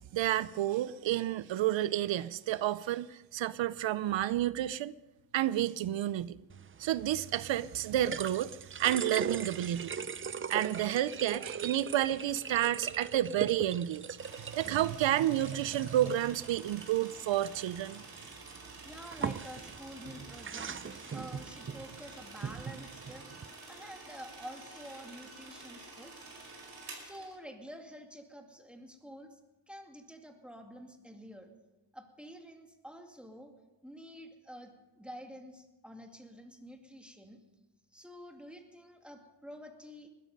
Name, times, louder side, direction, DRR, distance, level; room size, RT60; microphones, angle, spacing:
voice 1, 0.1-4.9 5.3-6.4 6.8-10.0 10.5-14.0 14.4-18.0, right 12 dB, 90° right, 17 dB, 0.6 m, -30 dB
sound 1, 6.5-23.5, right 6 dB, 30° right, 0.5 m, -41 dB
sound 2, 14.2-27.4, right 3 dB, 60° right, 5.0 m, -50 dB
voice 2, 18.8-26.1 27.0-29.4 29.7-31.5 31.9-33.5 33.8-34.7 35.0-37.4 37.9-40.1, equal, ahead, 3 dB, 2.3 m, -49 dB
20.5 x 12.5 x 5.4 m, 1.1 s
cardioid pair, 95°, 44 cm